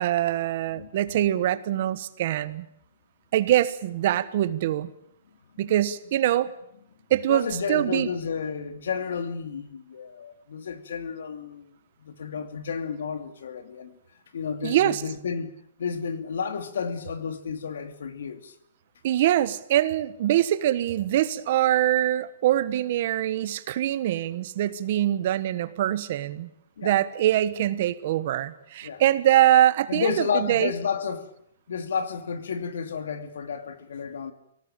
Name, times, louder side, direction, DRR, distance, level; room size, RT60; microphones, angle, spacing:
voice 1, 0.0-2.7 3.3-4.9 5.6-6.5 7.1-8.1 14.6-15.0 19.0-26.5 26.8-30.7, right 12 dB, 45° right, 1.3 m, -23 dB
voice 2, 7.3-11.7 12.0-14.0 14.3-15.5 15.8-18.5 26.8-27.0 28.8-29.0 29.9-31.3 31.7-34.3, left 6 dB, 90° left, 2.7 m, -31 dB
25.0 x 18.5 x 8.9 m
hypercardioid pair, 175°, 0 cm